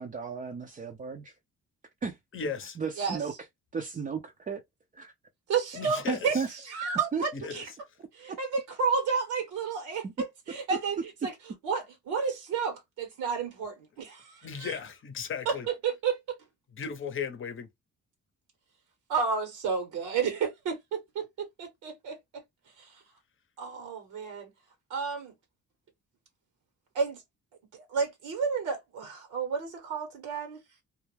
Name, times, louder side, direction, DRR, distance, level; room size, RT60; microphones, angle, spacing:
voice 1, 0.0-1.4 2.0-2.2 2.8-3.3 3.7-4.6 4.9-5.1 6.1-6.5 7.1-7.2 8.3-8.4 10.0-10.1, right 5 dB, 25° right, 0.4 m, -34 dB
voice 2, 2.3-2.8 5.7-6.4 7.3-7.6 14.4-14.9 15.1-15.7 16.8-17.7, left 6 dB, 40° left, 0.7 m, -35 dB
voice 3, 5.5-6.3 6.7-7.7 8.1-11.3 11.6-14.8 15.5-15.6 15.8-16.4 19.1-22.4 22.8-23.0 23.6-24.5 24.9-25.3 26.9-27.2 27.7-30.6, right 5 dB, 80° right, 1.0 m, -31 dB
2.3 x 2.1 x 3.1 m
cardioid pair, 90°, 30 cm